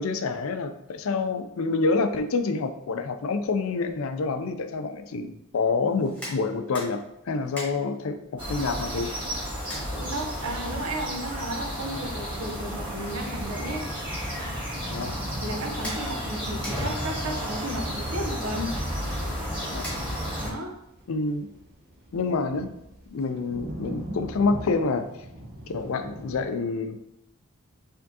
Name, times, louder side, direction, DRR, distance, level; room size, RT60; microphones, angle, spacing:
voice 1, 0.0-9.1 14.8-15.2 19.7-19.9 21.1-21.5 22.1-22.7 23.1-25.1 25.7-27.0, left 4 dB, 65° left, 9 dB, 0.4 m, -27 dB
sound 1, 5.8-20.5, equal, 5° left, 1.2 m, -46 dB
sound 2, 8.4-20.5, equal, 20° right, 1.5 m, -32 dB
voice 2, 9.9-13.8 15.4-18.8 20.4-20.7, right 1 dB, 75° right, 2 dB, 0.8 m, -33 dB
sound 3, 14.1-26.5, right 1 dB, 45° right, 0.9 m, -44 dB
4.3 x 3.6 x 2.8 m, 0.84 s
head